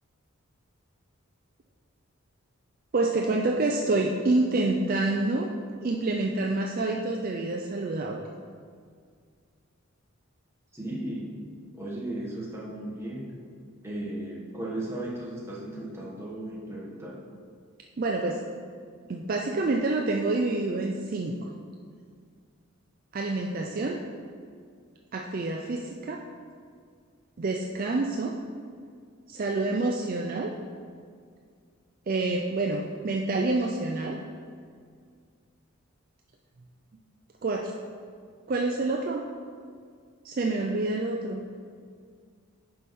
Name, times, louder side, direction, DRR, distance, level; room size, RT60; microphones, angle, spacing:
voice 1, 2.9-5.5 5.8-8.2 18.0-18.4 19.1-21.5 23.1-24.0 25.1-26.2 27.4-28.4 29.3-30.5 32.1-34.2 37.4-37.7 38.5-39.3 40.2-41.4, right 2 dB, 40° right, 1 dB, 0.4 m, -27 dB
voice 2, 10.7-11.3 11.7-13.2 13.8-17.2 23.5-24.0, right 1 dB, 10° right, -4 dB, 1.3 m, -36 dB
9.4 x 5.7 x 3.6 m, 2.1 s
head